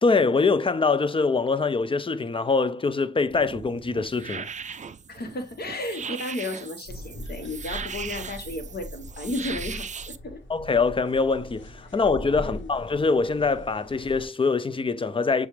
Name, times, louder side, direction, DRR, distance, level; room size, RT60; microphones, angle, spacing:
voice 1, 0.0-4.5 10.5-15.5, left 4 dB, 25° left, 0.5 m, -24 dB
sound 1, 3.3-10.2, right 6 dB, 40° right, 0.4 m, -38 dB
voice 2, 5.1-10.4 12.4-12.7, left 2 dB, 55° left, 1.2 m, -34 dB
sound 2, 6.9-14.3, equal, 80° left, 1.1 m, -41 dB
6.9 x 2.4 x 3.1 m
cardioid pair, 55°, 20 cm